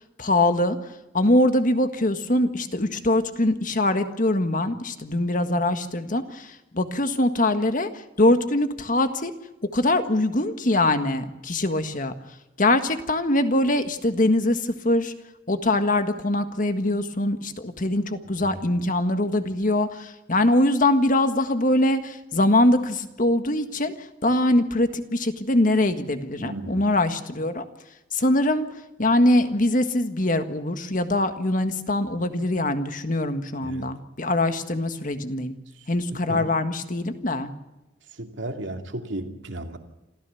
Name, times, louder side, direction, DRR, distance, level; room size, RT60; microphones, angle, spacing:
voice 1, 0.2-0.8 1.1-7.9 8.2-9.3 9.7-12.1 12.6-15.1 15.5-23.9 24.2-27.6 28.1-28.7 29.0-35.5 35.9-37.5, left 1 dB, 45° left, 9 dB, 1.6 m, -23 dB
voice 2, 26.4-26.9 33.6-33.9 36.1-36.5 38.1-39.8, right 1 dB, 75° right, 5 dB, 2.5 m, -34 dB
27.0 x 14.5 x 7.1 m, 1.0 s
head